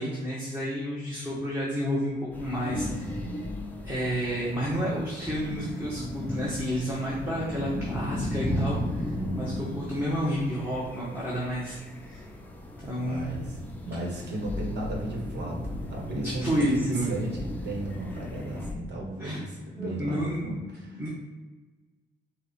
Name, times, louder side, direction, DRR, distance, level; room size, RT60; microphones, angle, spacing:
voice 1, 0.0-3.5 3.8-9.0 9.3-12.2 12.8-13.2 16.2-17.1 19.2-19.4 19.8-21.1, equal, 10° right, -7 dB, 1.4 m, -31 dB
sound 1, 2.3-18.7, left 1 dB, 10° left, 0.7 m, -35 dB
voice 2, 9.1-9.7 13.0-21.0, right 1 dB, 60° right, -1 dB, 1.5 m, -35 dB
4.8 x 2.5 x 4.3 m, 1.3 s
cardioid pair, 90°, 20 cm